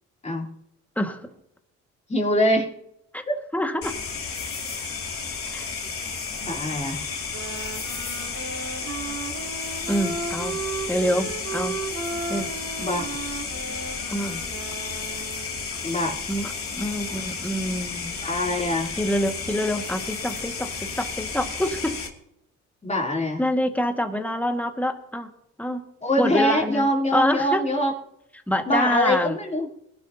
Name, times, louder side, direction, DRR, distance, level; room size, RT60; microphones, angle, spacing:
voice 1, 1.0-1.3 3.1-3.2 3.5-4.0 5.5-5.6 9.9-10.6 10.9-11.8 12.3-12.5 14.1-14.4 16.3-18.1 19.0-22.0 23.4-25.3 25.6-25.8 26.2-27.6 28.5-29.4, equal, 5° left, 5 dB, 1.8 m, -26 dB
voice 2, 2.1-2.7 3.3-3.4 5.5-5.7 6.4-7.0 12.8-13.2 15.8-16.2 18.2-18.9 22.8-23.4 26.0-27.9 28.7-29.7, equal, 20° left, -2 dB, 3.2 m, -24 dB
sound 1, 3.8-22.1, left 5 dB, 50° left, 2.6 m, -32 dB
sound 2, 7.3-15.7, right 4 dB, 70° right, 3.8 m, -35 dB
22.0 x 11.5 x 2.8 m, 0.78 s
cardioid pair, 90°, 30 cm